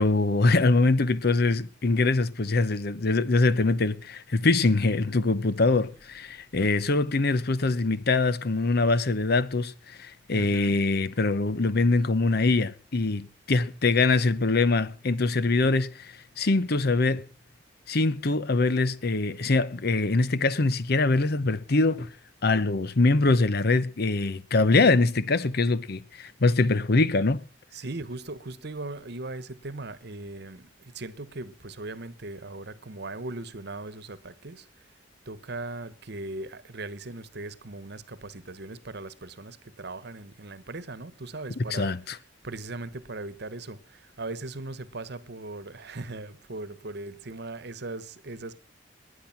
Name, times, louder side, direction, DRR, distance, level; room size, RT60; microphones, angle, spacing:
voice 1, 0.0-17.3 17.9-22.1 22.4-27.4 41.6-42.2, left 3 dB, 60° left, 0.8 m, -23 dB
voice 2, 10.3-10.8 26.3-26.4 27.7-34.7 35.3-41.9 42.4-48.6, right 2 dB, 65° right, 1.2 m, -39 dB
19.5 x 9.9 x 5.9 m
head